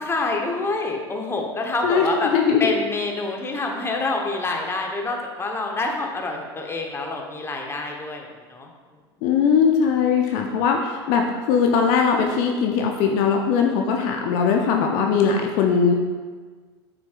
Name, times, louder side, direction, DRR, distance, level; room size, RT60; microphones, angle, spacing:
voice 1, 0.0-2.3 2.6-8.7, left 3 dB, 15° left, 1 dB, 1.1 m, -27 dB
voice 2, 1.8-2.7 9.2-15.9, left 6 dB, 55° left, 2 dB, 0.7 m, -20 dB
7.7 x 6.0 x 2.5 m, 1.5 s
hypercardioid pair, 80°, 14 cm